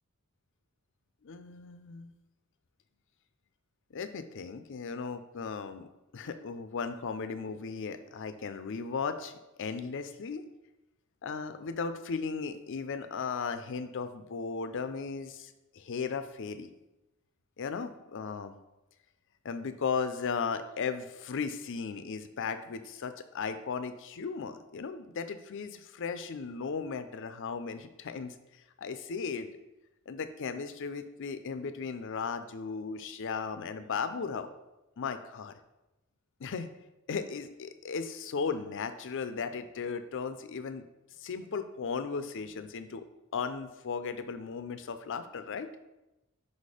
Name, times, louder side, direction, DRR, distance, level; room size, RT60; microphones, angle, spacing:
voice 1, 1.2-2.1 3.9-5.9 6.1-10.4 11.2-16.7 17.6-18.6 19.4-28.3 28.8-29.5 30.1-34.5 35.0-35.5 36.4-36.7 37.1-40.9 41.2-43.0 43.3-45.7, left 5 dB, 60° left, 10 dB, 0.5 m, -36 dB
5.5 x 4.2 x 4.9 m, 0.97 s
head